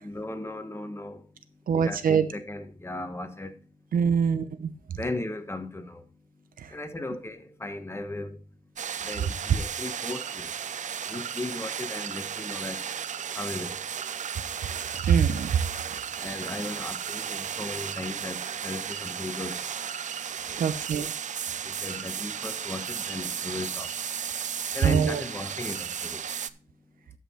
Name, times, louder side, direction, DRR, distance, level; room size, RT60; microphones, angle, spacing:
voice 1, 0.0-1.2 1.7-3.5 4.9-6.0 6.7-8.4 9.0-10.5 11.1-12.8 13.3-13.8 16.2-19.6 20.5-20.7 21.6-23.9 24.7-26.2, left 2 dB, 15° left, 1.3 m, -36 dB
voice 2, 1.7-2.2 3.9-4.7 6.6-6.7 15.0-15.5 20.6-21.1 24.8-25.2, right 7 dB, 80° right, 0.9 m, -23 dB
sound 1, 8.8-26.5, right 8 dB, 60° right, 0.5 m, -34 dB
12.5 x 5.6 x 4.2 m
cardioid pair, 90°, 14 cm